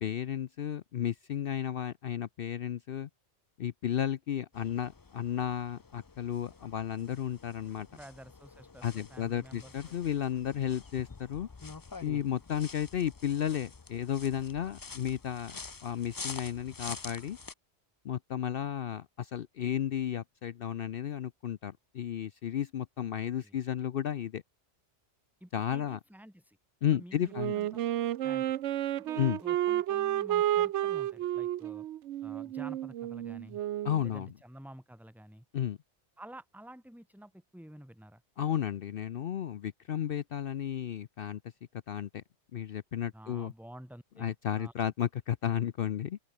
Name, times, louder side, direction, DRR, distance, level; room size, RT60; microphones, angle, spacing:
voice 1, 0.0-3.1 3.6-7.9 8.8-11.5 12.0-17.4 18.0-24.4 25.5-26.0 26.8-27.5 29.2-29.4 33.8-34.3 35.5-35.8 38.4-41.4 41.9-42.2 42.5-43.5 44.2-46.2, left 10 dB, 60° left, 0.7 m, -33 dB
sound 1, 4.5-17.5, left 4 dB, 25° left, 0.4 m, -47 dB
voice 2, 7.9-10.0 23.0-23.1 23.4-23.6 25.4-26.6 26.9-27.7 28.2-28.5 29.0-31.9 32.2-33.6 34.0-35.4 36.2-38.2 43.1-44.9, right 1 dB, ahead, 2.0 m, -50 dB
Wind instrument woodwind instrument, 27.3-34.0, right 12 dB, 80° right, 0.9 m, -31 dB
open air
omnidirectional pair, 1.2 m